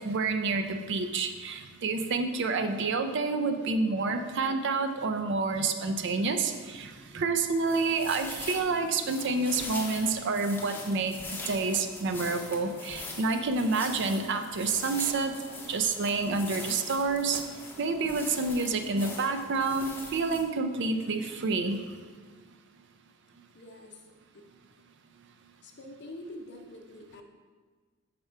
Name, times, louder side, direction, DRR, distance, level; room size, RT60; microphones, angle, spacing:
voice 1, 0.0-11.2 11.5-17.4 17.8-21.8, right 3 dB, 55° right, 7 dB, 0.5 m, -28 dB
sound 1, 7.4-20.4, left 2 dB, 10° left, 0.7 m, -42 dB
voice 2, 23.5-24.0 25.6-27.2, left 1 dB, 55° left, 1 dB, 0.8 m, -45 dB
5.4 x 5.1 x 4.5 m, 1.5 s
head